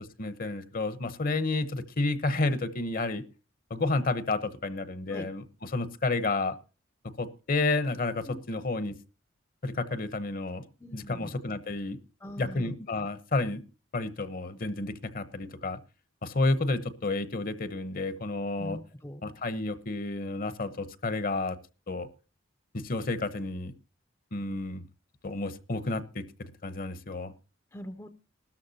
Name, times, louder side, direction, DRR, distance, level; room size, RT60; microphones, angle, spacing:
voice 1, 0.2-3.2 3.7-6.5 7.2-8.9 9.6-10.7 10.9-12.0 12.4-13.6 13.9-15.8 16.2-18.8 19.2-21.6 21.9-22.1 22.7-23.7 24.3-24.8 25.2-27.3, left 2 dB, 45° left, 13 dB, 0.9 m, -31 dB
voice 2, 10.8-11.4 12.2-12.7 18.6-19.2 27.7-28.1, equal, 15° left, 9 dB, 0.6 m, -42 dB
16.5 x 13.0 x 2.8 m, 0.33 s
head